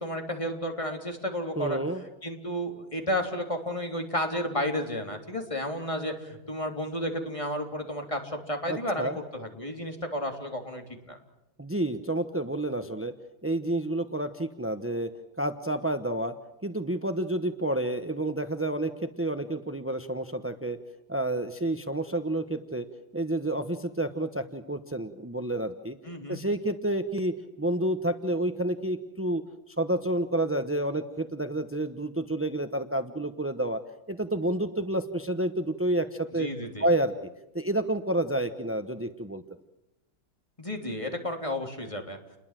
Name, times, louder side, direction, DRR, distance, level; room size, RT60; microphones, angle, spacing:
voice 1, 0.0-1.8 2.2-11.2 26.1-26.4 36.4-36.9 40.6-42.2, left 1 dB, 15° left, 3 dB, 3.5 m, -32 dB
voice 2, 1.6-2.0 8.7-9.1 11.6-13.1 13.4-15.1 15.4-16.3 16.6-20.8 21.1-22.9 23.1-26.0 26.3-33.8 34.1-36.5 36.8-37.1 37.5-39.4, right 1 dB, 15° right, 9 dB, 0.5 m, -29 dB
29.5 x 21.5 x 7.6 m, 0.93 s
omnidirectional pair, 2.1 m